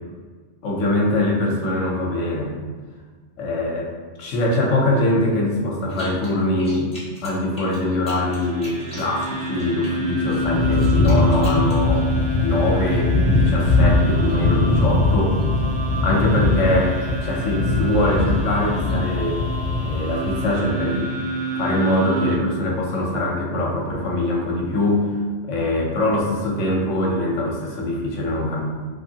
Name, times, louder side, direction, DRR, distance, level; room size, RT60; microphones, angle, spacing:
voice 1, 0.6-2.6 3.4-3.9 4.2-6.9 7.2-12.1 12.4-15.4 16.0-19.4 19.8-21.1 21.5-25.1 25.5-28.6, left 1 dB, 80° left, -1 dB, 1.1 m, -22 dB
sound 1, 5.9-6.3 6.6-9.9 10.3-11.8, left 1 dB, 5° left, 1.1 m, -41 dB
sound 2, 8.1-22.4, right 1 dB, 70° right, 0.3 m, -29 dB
sound 3, 10.4-20.6, left 2 dB, 25° left, 1.0 m, -21 dB
3.4 x 3.1 x 2.7 m, 1.5 s
omnidirectional pair, 1.3 m